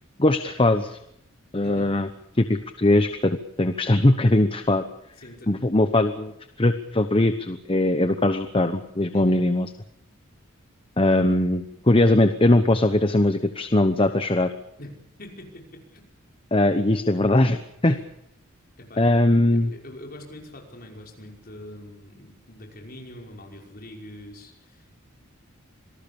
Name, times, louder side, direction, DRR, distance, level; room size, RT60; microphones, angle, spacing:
voice 1, 0.2-1.0 1.5-2.1 2.4-4.8 5.5-6.3 6.6-9.7 11.0-14.5 16.5-17.9 19.0-19.7, left 1 dB, 25° left, 9 dB, 1.0 m, -20 dB
voice 2, 5.2-5.7 9.1-9.4 14.8-14.9 15.2-16.1 17.8-18.0 18.8-19.2 19.5-25.1, left 1 dB, 45° left, 1 dB, 5.5 m, -43 dB
26.0 x 19.0 x 7.1 m, 0.79 s
head